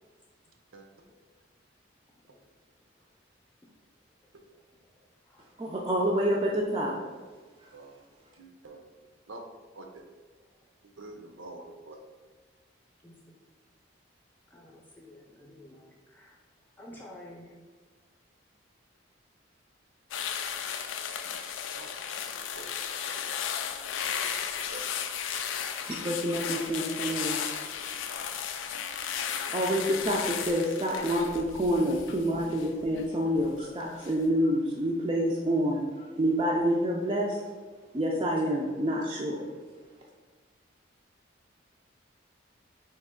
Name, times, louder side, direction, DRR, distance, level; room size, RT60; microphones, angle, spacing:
voice 1, 5.6-7.0 25.9-27.4 29.5-37.4 37.9-39.4, equal, 25° right, -3 dB, 0.3 m, -28 dB
voice 2, 8.3-8.8 9.3-9.4 9.7-10.0 10.8-12.0 21.2-21.3 21.7-21.9 22.5-22.7 24.7-24.9, right 2 dB, 85° right, 3 dB, 0.6 m, -46 dB
voice 3, 13.0-13.4 14.5-16.4 16.8-17.5, left 1 dB, 10° left, -2 dB, 0.6 m, -50 dB
sound 1, 20.1-33.5 33.8-34.1, left 7 dB, 80° left, 0.4 m, -35 dB
4.1 x 2.9 x 3.6 m, 1.4 s
head